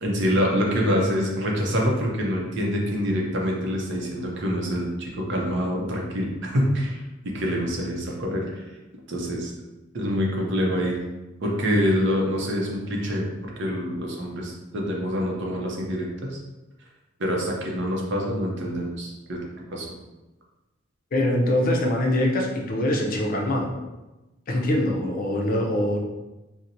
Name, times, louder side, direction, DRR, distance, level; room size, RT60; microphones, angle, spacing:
voice 1, 0.0-8.7 9.1-9.5 9.9-11.0 11.4-13.3 13.6-16.4 17.2-19.4 19.7-19.9, equal, 60° right, -1 dB, 0.6 m, -26 dB
voice 2, 21.1-23.7 24.5-26.0, left 1 dB, 45° left, 0 dB, 0.5 m, -23 dB
4.2 x 2.1 x 2.6 m, 1.1 s
head